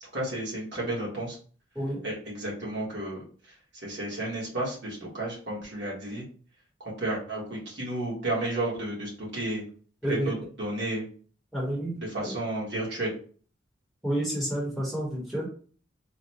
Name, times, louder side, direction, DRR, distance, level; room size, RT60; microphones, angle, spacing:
voice 1, 0.0-1.4 2.0-3.2 3.8-6.3 6.8-9.6 10.1-11.0 12.0-13.1, right 1 dB, 70° right, -4 dB, 1.3 m, -32 dB
voice 2, 11.5-12.0 12.2-12.3 14.0-15.5, right 1 dB, ahead, -5 dB, 1.0 m, -29 dB
3.9 x 2.2 x 2.8 m, 0.42 s
head